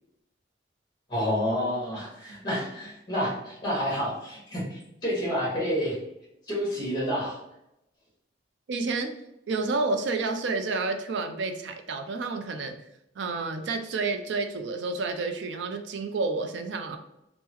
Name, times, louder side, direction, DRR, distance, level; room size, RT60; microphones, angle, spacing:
voice 1, 1.1-5.9 6.5-7.4, equal, 25° left, -5 dB, 1.2 m, -29 dB
voice 2, 8.7-9.1 9.5-12.8 13.2-17.0, right 3 dB, 75° right, 6 dB, 0.4 m, -30 dB
3.6 x 2.0 x 2.9 m, 0.84 s
head